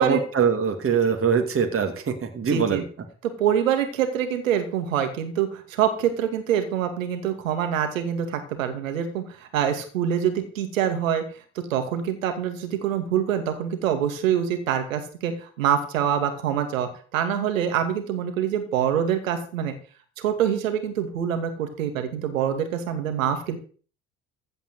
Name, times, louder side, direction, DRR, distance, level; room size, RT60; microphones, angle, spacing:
voice 1, 0.0-2.8, right 6 dB, 35° right, 4 dB, 2.7 m, -23 dB
voice 2, 2.5-2.8 3.2-11.2 11.7-19.7 20.2-23.6, right 9 dB, 80° right, 7 dB, 2.4 m, -25 dB
15.5 x 5.3 x 8.2 m, 0.41 s
hypercardioid pair, 60°, 39 cm